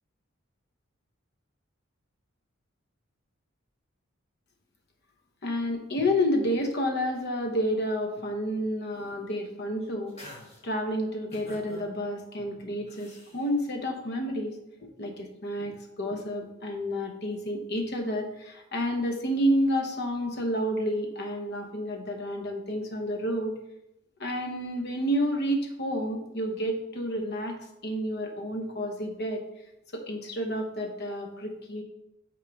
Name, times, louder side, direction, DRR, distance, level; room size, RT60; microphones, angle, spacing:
voice 1, 5.4-10.1 10.6-14.5 15.0-23.6 24.2-27.6 27.8-29.4 29.9-31.8, equal, 55° left, 4 dB, 0.9 m, -30 dB
sound 1, 8.9-9.4 9.8-10.6 11.3-11.9 12.9-13.4, left 1 dB, 30° left, 1.4 m, -48 dB
6.2 x 3.7 x 4.7 m, 0.88 s
head